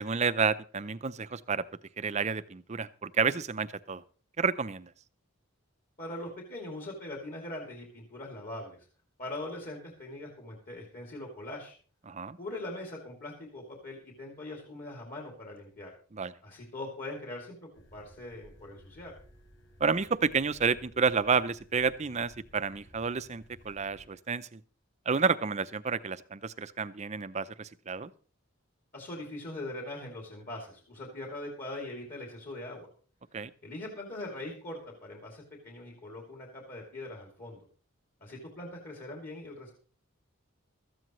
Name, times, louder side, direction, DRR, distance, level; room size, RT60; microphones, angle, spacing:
voice 1, 0.0-1.6 2.0-4.0 4.4-4.9 12.1-12.4 16.1-16.3 19.8-24.6 25.1-28.1 33.3-33.5, right 5 dB, 35° right, 13 dB, 0.6 m, -30 dB
voice 2, 6.0-8.9 9.2-11.7 12.4-15.9 16.4-19.1 28.9-32.9 33.6-37.6 38.2-39.7, left 1 dB, 40° left, 0 dB, 2.8 m, -41 dB
sound 1, 17.7-24.1, equal, 55° left, 6.3 m, -57 dB
17.0 x 13.5 x 3.1 m, 0.41 s
head